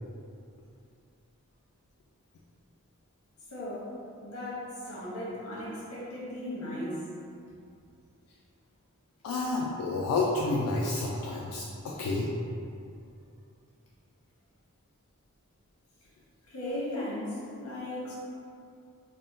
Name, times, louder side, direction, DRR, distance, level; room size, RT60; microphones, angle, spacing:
voice 1, 3.5-3.9 4.2-7.0 16.5-18.1, left 1 dB, 70° left, -7 dB, 0.9 m, -36 dB
voice 2, 9.2-12.3, left 3 dB, 85° left, -4 dB, 0.3 m, -30 dB
3.5 x 2.2 x 2.5 m, 2.5 s
head